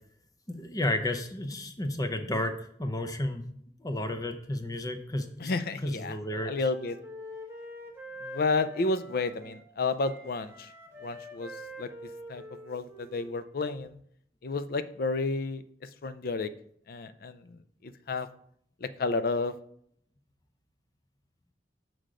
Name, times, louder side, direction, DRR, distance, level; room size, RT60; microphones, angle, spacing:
voice 1, 0.5-3.4 3.8-5.3 5.8-6.5, left 1 dB, 20° left, 7 dB, 0.7 m, -32 dB
voice 2, 5.4-7.0 8.2-10.7 11.0-11.5 11.8-14.0 14.4-16.5 16.9-18.3 18.8-19.5, left 3 dB, 55° left, 13 dB, 0.5 m, -31 dB
Wind instrument woodwind instrument, 6.1-9.6 10.0-13.7, left 1 dB, 15° right, 1.3 m, -46 dB
6.5 x 6.3 x 3.8 m, 0.67 s
head